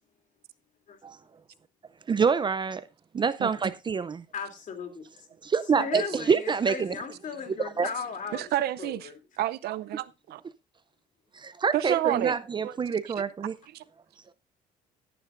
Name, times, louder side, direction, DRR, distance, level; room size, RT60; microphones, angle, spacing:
voice 1, 2.1-2.8 3.1-4.2 5.4-6.9 7.8-7.9 11.3-13.5, right 5 dB, 25° right, 0.6 m, -26 dB
voice 2, 4.3-5.1 5.8-9.2, left 6 dB, 50° left, 3.0 m, -37 dB
voice 3, 8.3-9.0 9.4-10.4 11.7-12.3 12.6-12.8 13.1-13.2 13.7-13.8, right 14 dB, 70° right, 0.6 m, -29 dB
16.0 x 10.0 x 2.6 m
cardioid pair, 110°, 17 cm